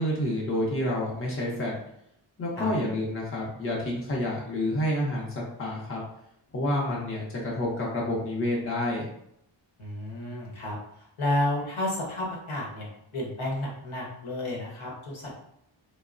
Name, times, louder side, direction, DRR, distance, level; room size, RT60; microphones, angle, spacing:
voice 1, 0.0-1.7 2.4-6.0 6.5-9.0, left 1 dB, 25° left, -4 dB, 0.7 m, -29 dB
voice 2, 9.8-15.4, left 1 dB, 80° left, -3 dB, 0.9 m, -31 dB
3.0 x 2.0 x 2.4 m, 0.74 s
wide cardioid pair, 135°, 49 cm